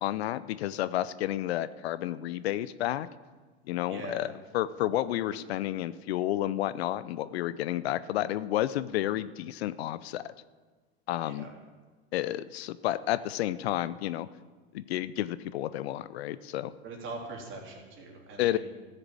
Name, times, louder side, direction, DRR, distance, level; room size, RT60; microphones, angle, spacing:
voice 1, 0.0-3.1 3.7-4.3 4.5-10.3 11.1-11.5 12.1-14.3 14.7-16.7 18.4-18.6, left 13 dB, 70° left, 15 dB, 0.6 m, -31 dB
voice 2, 3.9-4.3 5.3-5.4 11.2-11.5 16.8-18.6, right 3 dB, 40° right, -1 dB, 3.4 m, -42 dB
14.0 x 6.7 x 7.4 m, 1.4 s
hypercardioid pair, 90°, 32 cm